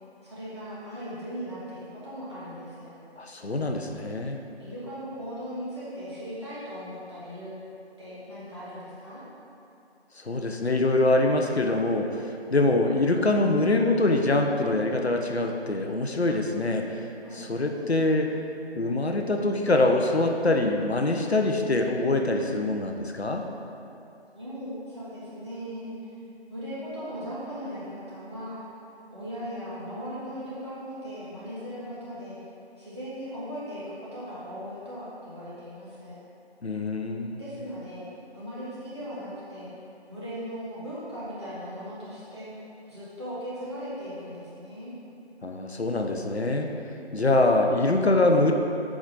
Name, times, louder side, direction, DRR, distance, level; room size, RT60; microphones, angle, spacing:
voice 1, 0.2-2.9 4.6-7.5 8.0-9.2 17.2-18.0 24.3-25.9 26.5-28.6 29.1-32.4 32.8-36.1 37.4-38.0 38.3-39.7 40.1-42.5 42.9-44.9, equal, 25° right, -11 dB, 1.6 m, -38 dB
voice 2, 3.2-4.4 10.2-12.2 12.5-17.0 17.3-18.3 18.8-23.4 36.6-37.4 45.4-46.7 47.1-48.5, left 2 dB, 70° left, 3 dB, 0.8 m, -24 dB
6.1 x 5.1 x 5.2 m, 2.7 s
figure-of-eight pair, 165°, 33 cm